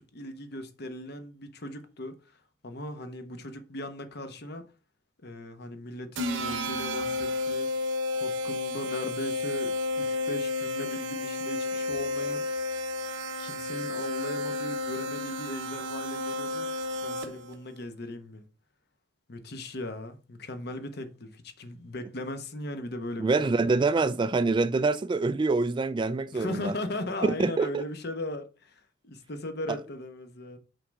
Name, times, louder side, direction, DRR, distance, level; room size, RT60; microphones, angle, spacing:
voice 1, 0.0-4.7 5.2-7.7 8.1-12.4 13.4-18.5 19.3-23.8 26.3-30.6, left 1 dB, 60° left, 1.1 m, -38 dB
sound 1, 6.2-17.5, left 2 dB, 80° right, 0.9 m, -32 dB
voice 2, 23.2-26.7 27.2-27.8, right 3 dB, 25° right, 0.3 m, -25 dB
5.6 x 3.5 x 5.3 m
head